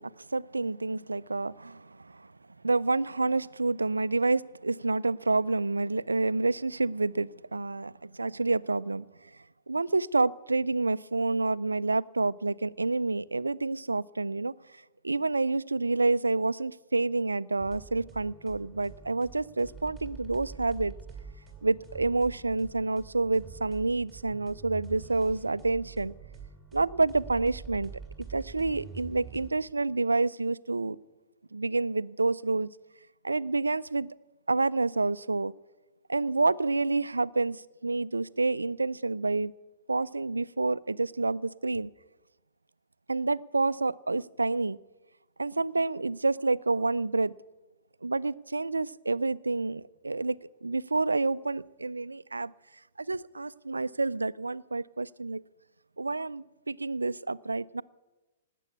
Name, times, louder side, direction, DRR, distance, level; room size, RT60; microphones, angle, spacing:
voice 1, 0.0-2.3 2.6-9.1 9.7-14.5 15.0-20.9 21.6-26.1 26.7-27.9 28.3-31.0 31.5-32.7 33.2-34.1 34.5-35.5 36.1-39.5 39.9-41.9 43.1-44.8 45.4-47.3 48.0-50.4 50.6-52.5 53.0-55.4 56.0-57.8, right 3 dB, 80° right, 20 dB, 0.4 m, -28 dB
sound 1, 17.6-29.5, right 6 dB, 5° right, 3.0 m, -46 dB
18.5 x 8.3 x 8.2 m, 1.1 s
figure-of-eight pair, 115°, 0 cm